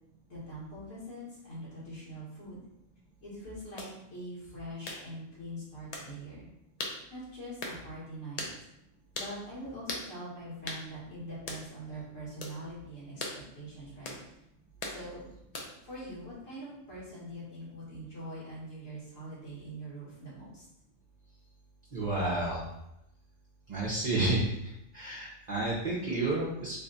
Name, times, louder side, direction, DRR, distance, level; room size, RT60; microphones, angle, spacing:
voice 1, 0.3-2.6 3.2-6.5 7.1-8.5 9.1-14.2 14.9-15.3 15.8-20.6, right 1 dB, 80° left, -8 dB, 1.9 m, -43 dB
sound 1, 3.8-3.9 4.8-5.0 5.9-6.1 6.8-7.0 7.6-7.8 8.4-8.6 9.1-9.3 9.9-10.1 10.7-10.8 11.5-11.6 12.4-12.6 13.2-13.4 14.0-14.2 14.8-15.0 15.5-15.8, left 2 dB, 55° left, 0.4 m, -38 dB
voice 2, 21.9-22.7 23.7-24.5 24.9-26.8, right 2 dB, 45° right, -5 dB, 0.6 m, -30 dB
3.5 x 2.3 x 3.9 m, 0.84 s
omnidirectional pair, 1.3 m